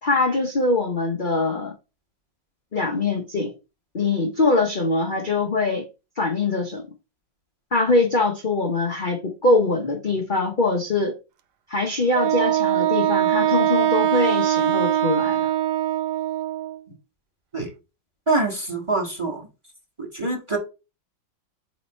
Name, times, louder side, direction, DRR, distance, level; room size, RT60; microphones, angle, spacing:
voice 1, 0.0-1.7 2.7-3.5 3.9-5.8 6.2-6.8 7.7-11.1 11.7-15.5, left 3 dB, 35° left, 0.8 m, -23 dB
Wind instrument woodwind instrument, 12.1-16.8, right 12 dB, 70° right, 1.1 m, -22 dB
voice 2, 18.3-19.4 20.1-20.6, right 3 dB, 15° right, 1.4 m, -24 dB
7.7 x 3.2 x 4.2 m
omnidirectional pair, 2.1 m